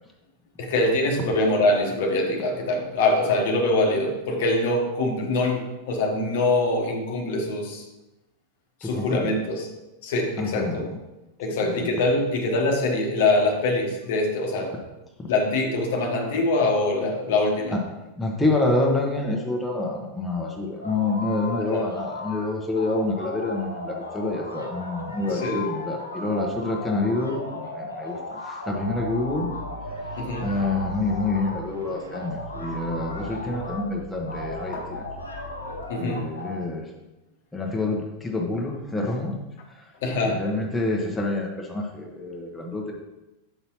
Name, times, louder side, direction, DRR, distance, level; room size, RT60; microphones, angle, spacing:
voice 1, 0.6-7.8 8.8-9.7 10.0-10.9 11.4-14.7 15.3-17.8 21.7-21.8 25.3-25.6 30.2-30.5 33.4-33.6 34.7-34.8 35.9-36.3 40.0-40.4, left 2 dB, 55° left, 2 dB, 1.1 m, -24 dB
voice 2, 8.8-9.3 10.4-11.0 11.5-11.9 15.2-15.3 17.7-17.8 18.2-29.5 30.4-35.0 36.0-36.9 37.5-39.4 39.7-39.9 40.3-42.9, left 2 dB, 10° left, -1 dB, 1.0 m, -27 dB
sound 1, 20.8-22.5 22.7-31.6 32.1-33.9 34.3-36.6, left 2 dB, 80° left, 0.8 m, -36 dB
sound 2, 28.7-35.8, right 1 dB, 70° right, 0.7 m, -40 dB
8.0 x 5.4 x 3.0 m, 1.0 s
figure-of-eight pair, 90°, 0 cm